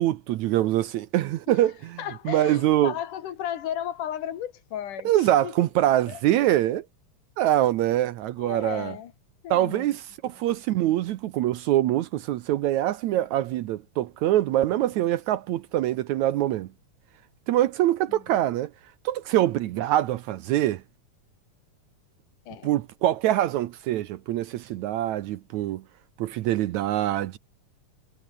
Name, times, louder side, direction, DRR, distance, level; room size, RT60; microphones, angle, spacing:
voice 1, 0.0-2.0 2.3-2.9 5.1-6.8 7.4-8.9 9.5-16.7 17.5-18.7 19.1-20.8 22.6-25.8 26.2-27.4, right 13 dB, 75° right, 1.9 m, -24 dB
voice 2, 2.0-5.5 6.1-6.8 8.4-9.1 9.4-9.9 18.1-18.2 22.5-22.7, left 10 dB, 75° left, 3.1 m, -35 dB
omnidirectional pair, 3.8 m